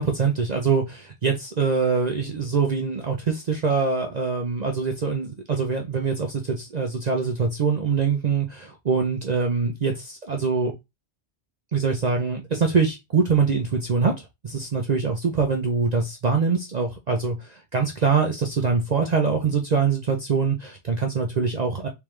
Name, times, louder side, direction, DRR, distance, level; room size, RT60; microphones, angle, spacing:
voice 1, 0.0-10.7 11.7-14.1 14.4-21.9, right 5 dB, 45° right, 0.6 m, -24 dB
3.5 x 3.4 x 3.1 m
omnidirectional pair, 1.2 m